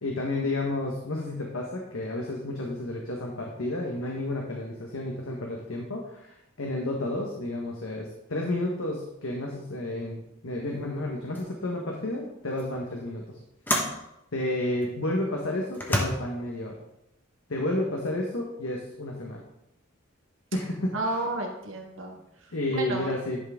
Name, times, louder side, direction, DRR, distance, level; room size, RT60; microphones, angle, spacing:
voice 1, 0.0-13.4 14.3-16.7 17.5-19.4 20.5-21.1 22.5-23.4, left 1 dB, 75° left, 0 dB, 1.2 m, -31 dB
sound 1, 10.7-10.9 11.3-11.6 12.6-12.7 13.7-14.0 14.8-14.9 15.7-16.0, left 1 dB, 10° left, 1.1 m, -28 dB
voice 2, 20.9-23.1, right 2 dB, 70° right, 0 dB, 1.6 m, -32 dB
10.5 x 6.1 x 3.5 m, 0.85 s
head